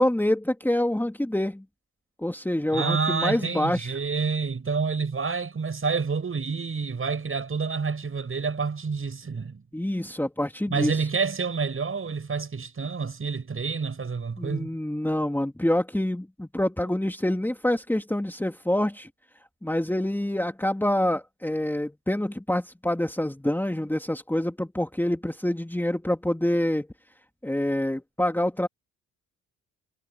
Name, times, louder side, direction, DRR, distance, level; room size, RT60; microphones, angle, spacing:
voice 1, 0.0-1.6 2.2-3.9 9.7-11.0 14.4-19.1 19.6-26.9 27.4-28.7, left 1 dB, 5° left, 2.8 m, -26 dB
voice 2, 2.7-9.6 10.7-14.8, right 5 dB, 35° right, 7.3 m, -28 dB
hypercardioid pair, 55°, 36 cm